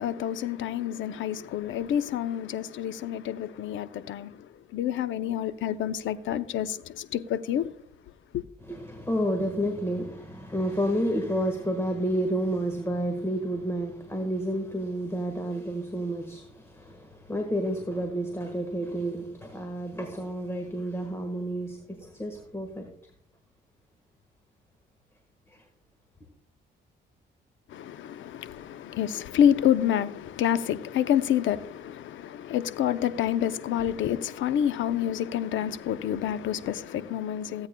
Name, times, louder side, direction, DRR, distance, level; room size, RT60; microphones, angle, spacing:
voice 1, 0.0-4.4 4.7-7.7 8.3-8.4 27.7-37.7, left 10 dB, 75° left, 0.6 m, -28 dB
voice 2, 8.7-22.9, right 1 dB, 15° left, 1.4 m, -30 dB
16.0 x 8.7 x 2.2 m
cardioid pair, 90°, 20 cm